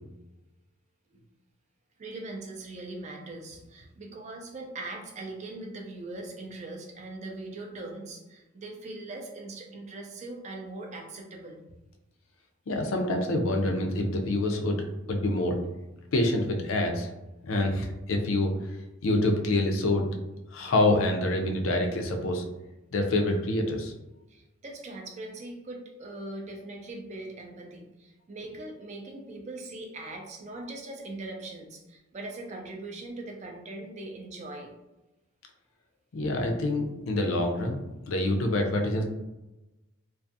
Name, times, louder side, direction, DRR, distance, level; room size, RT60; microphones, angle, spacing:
voice 1, 2.0-11.6 16.0-16.1 24.3-34.7 38.6-38.7, right 2 dB, 35° right, 2 dB, 0.4 m, -41 dB
voice 2, 12.7-15.6 16.1-17.1 17.4-18.6 19.0-20.1 20.5-22.4 22.9-23.9 36.1-37.8 38.1-39.0, left 1 dB, 70° left, 3 dB, 0.4 m, -26 dB
2.4 x 2.3 x 2.6 m, 0.99 s
head